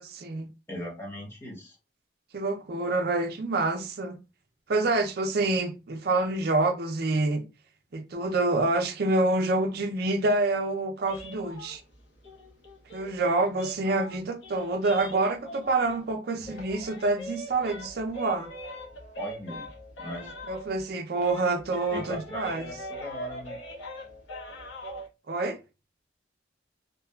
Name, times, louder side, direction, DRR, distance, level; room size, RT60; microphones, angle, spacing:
voice 1, 0.2-0.5 2.3-4.2 4.7-7.4 7.9-11.8 12.9-18.5 20.5-22.6 25.3-25.6, right 2 dB, 55° right, 0.4 m, -27 dB
voice 2, 0.7-1.8 16.3-16.5 19.2-19.7 20.0-20.3 21.9-23.6, equal, 15° left, 0.8 m, -38 dB
sound 1, 11.0-16.1 16.4-20.9 21.2-25.1, equal, 80° left, 0.7 m, -42 dB
2.7 x 2.3 x 2.2 m
head